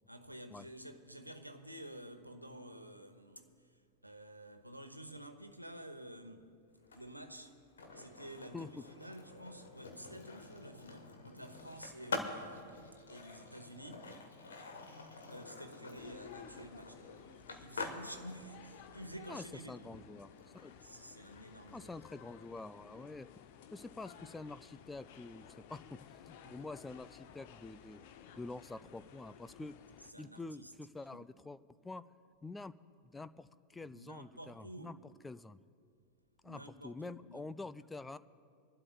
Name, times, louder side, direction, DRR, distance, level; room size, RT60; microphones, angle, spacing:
voice 1, 0.1-6.5 6.9-7.6 7.9-14.2 15.2-19.9 20.8-21.9 26.4-26.6 30.0-30.7 31.1-31.3 33.8-35.0 36.4-37.5, right 1 dB, 90° right, 0.9 m, -51 dB
Skateboard, 6.8-22.6, left 3 dB, 70° left, 1.3 m, -48 dB
voice 2, 8.5-8.8 19.3-20.3 20.5-20.7 21.7-23.3 23.7-28.0 28.4-29.7 30.2-32.0 32.4-32.7 33.0-35.0 35.2-35.6 36.4-38.2, left 3 dB, 10° left, 0.3 m, -47 dB
sound 1, 16.0-30.1, left 8 dB, 50° left, 0.6 m, -56 dB
27.0 x 12.0 x 2.3 m
figure-of-eight pair, 90°, 0 cm